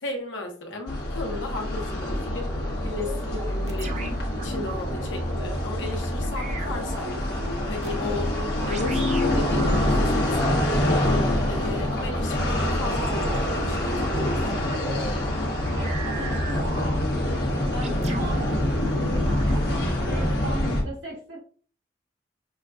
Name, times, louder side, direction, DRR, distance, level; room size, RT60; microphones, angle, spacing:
voice 1, 0.0-2.5 2.8-7.1 7.7-10.9 11.5-14.6, left 2 dB, 85° left, 2 dB, 1.0 m, -35 dB
sound 1, 0.9-20.8, left 1 dB, 60° left, 1.3 m, -26 dB
sound 2, 2.6-5.5 6.4-10.3 11.6-11.8 12.8-15.1 15.6-17.3 17.8-18.6 18.9-19.9, right 2 dB, 35° right, 0.5 m, -38 dB
voice 2, 15.0-21.4, equal, 75° right, -3 dB, 1.8 m, -38 dB
6.1 x 2.3 x 2.5 m, 0.43 s
head